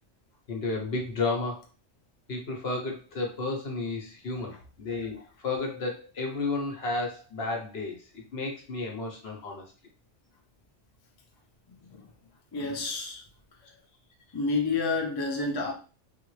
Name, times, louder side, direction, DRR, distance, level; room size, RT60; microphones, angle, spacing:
voice 1, 0.5-1.6 2.3-7.9 8.3-9.6, left 3 dB, 60° left, 1.0 m, -32 dB
voice 2, 12.5-13.2 14.3-15.7, left 3 dB, 35° left, 0.4 m, -29 dB
3.6 x 2.1 x 3.1 m
omnidirectional pair, 1.3 m